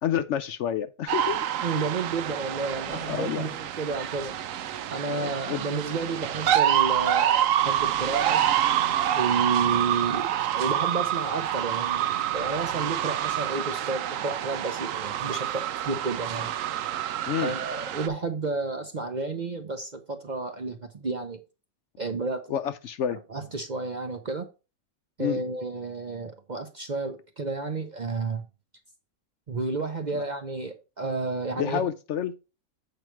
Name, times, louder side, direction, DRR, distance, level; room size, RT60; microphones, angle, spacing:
voice 1, 0.0-1.5 3.1-3.6 5.1-5.6 6.1-6.2 17.3-17.5 22.5-23.2 25.2-25.4 30.1-30.2 31.5-32.3, left 9 dB, 65° left, 0.8 m, -29 dB
sound 1, 1.1-18.1, right 11 dB, 70° right, 1.0 m, -27 dB
voice 2, 1.6-4.3 4.9-8.4 9.1-16.5 17.4-21.4 22.0-22.5 23.3-24.5 25.2-28.4 29.5-31.8, right 3 dB, 40° right, 0.7 m, -31 dB
7.8 x 4.8 x 4.5 m
omnidirectional pair, 1.5 m